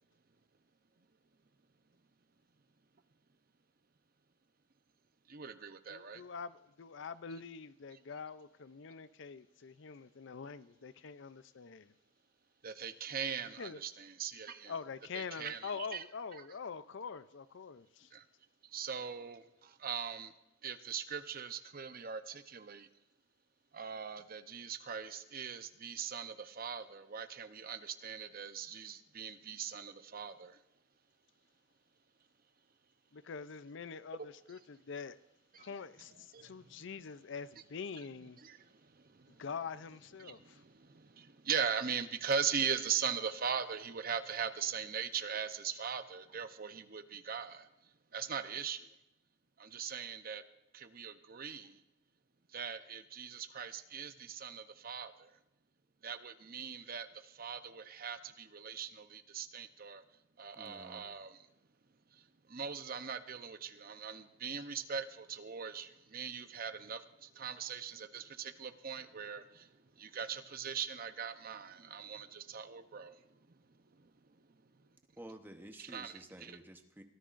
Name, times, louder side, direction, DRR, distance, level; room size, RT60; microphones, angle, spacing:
voice 1, 5.3-6.2 12.6-14.7 15.1-16.0 18.1-18.3 18.6-20.3 20.6-22.9 23.7-30.6 35.5-35.7 36.1-36.8 38.4-39.5 40.2-48.9 49.6-50.4 50.7-51.8 52.5-55.4 56.0-60.0 60.4-61.5 62.1-73.6 73.9-74.9 75.8-76.6, right 7 dB, 45° right, 0.7 m, -41 dB
voice 2, 5.9-11.9 13.6-13.8 14.6-18.1 33.1-35.2 35.6-38.4 39.4-40.6, left 5 dB, 60° left, 0.5 m, -45 dB
voice 3, 60.5-61.1 75.2-77.0, right 1 dB, 10° right, 1.0 m, -51 dB
23.0 x 14.0 x 2.6 m
head